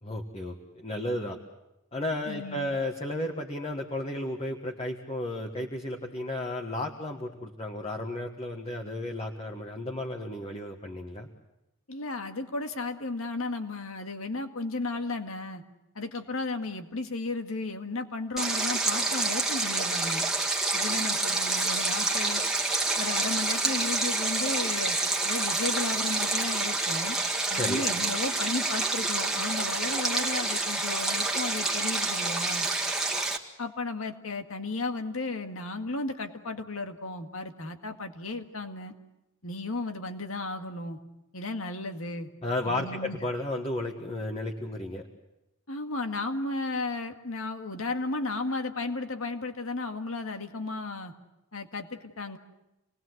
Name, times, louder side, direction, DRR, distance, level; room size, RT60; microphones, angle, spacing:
voice 1, 0.0-1.4 1.9-11.3 27.5-27.8 42.4-45.0, left 1 dB, 30° left, 1 dB, 1.6 m, -33 dB
voice 2, 2.3-2.7 11.9-15.6 16.0-20.3 20.7-22.4 23.0-25.0 25.2-27.2 27.5-32.7 33.6-38.9 39.4-41.0 41.3-42.3 42.6-43.2 45.7-51.1 51.5-52.4, left 3 dB, 90° left, 6 dB, 1.9 m, -34 dB
Stream, 18.4-33.4, right 2 dB, ahead, 1.8 m, -28 dB
28.0 x 20.0 x 8.0 m, 0.94 s
head